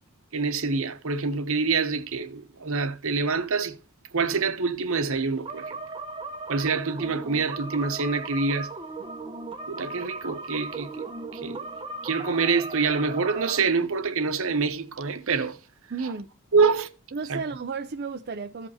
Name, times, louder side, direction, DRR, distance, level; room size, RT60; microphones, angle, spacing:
voice 1, 0.3-3.8 4.1-5.8 6.5-8.7 9.7-11.7 12.0-15.6 16.5-16.9 17.3-17.4, right 4 dB, 65° right, 1.0 m, -26 dB
sound 1, 5.5-13.6, right 2 dB, 25° right, 0.9 m, -37 dB
voice 2, 15.9-16.3 17.1-18.7, right 4 dB, 45° right, 0.5 m, -33 dB
15.5 x 5.5 x 2.8 m
head